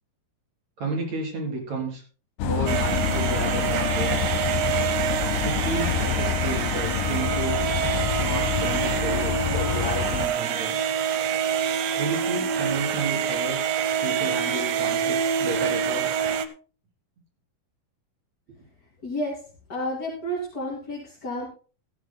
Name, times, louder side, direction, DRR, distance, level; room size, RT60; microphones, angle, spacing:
voice 1, 0.8-2.0 2.4-4.4 5.4-7.7 8.2-10.8 12.0-13.6 14.0-16.1, right 3 dB, 55° right, 0 dB, 4.8 m, -32 dB
sound 1, 2.4-10.3, left 9 dB, 80° left, 2.4 m, -27 dB
sound 2, 2.7-16.5, right 8 dB, 75° right, 1.5 m, -26 dB
voice 2, 19.0-19.4 19.7-21.5, equal, 30° left, -4 dB, 2.7 m, -31 dB
16.0 x 14.0 x 2.3 m, 0.37 s
omnidirectional pair, 4.0 m